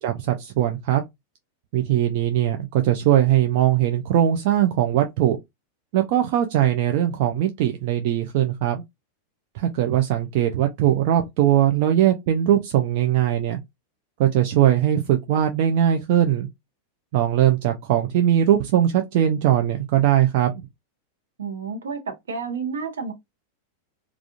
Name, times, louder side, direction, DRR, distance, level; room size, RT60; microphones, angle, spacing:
voice 1, 0.0-1.0 1.7-5.4 5.9-8.8 9.5-13.6 14.2-16.5 17.1-20.5, right 11 dB, 50° right, 0.4 m, -20 dB
voice 2, 21.4-23.1, right 5 dB, 65° right, 0.8 m, -30 dB
3.5 x 2.3 x 2.4 m
figure-of-eight pair, 90°, 0 cm